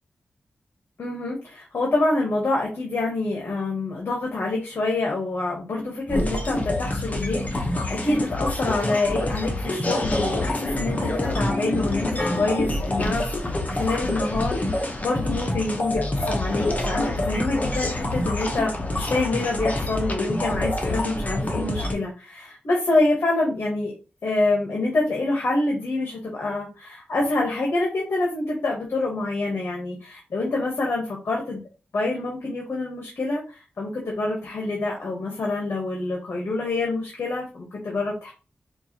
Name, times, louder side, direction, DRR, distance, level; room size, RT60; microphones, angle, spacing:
voice 1, 1.0-23.9 24.2-31.6 31.9-38.3, left 2 dB, 70° left, -1 dB, 1.1 m, -26 dB
sound 1, 6.1-21.9, left 1 dB, 40° left, 0.9 m, -26 dB
4.6 x 2.5 x 2.8 m, 0.33 s
cardioid pair, 65°, 4 cm